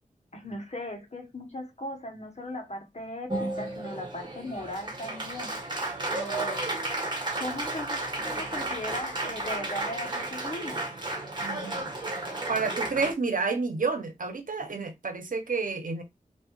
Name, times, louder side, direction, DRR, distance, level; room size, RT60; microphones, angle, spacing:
voice 1, 0.3-5.5 6.1-6.7 7.4-10.8, left 1 dB, 50° left, 1.5 m, -38 dB
Applause, 3.3-13.1, right 2 dB, 35° right, 1.5 m, -33 dB
voice 2, 11.4-11.9 12.5-16.0, right 4 dB, 75° right, 1.0 m, -30 dB
4.5 x 2.9 x 3.1 m
wide cardioid pair, 55°, 14 cm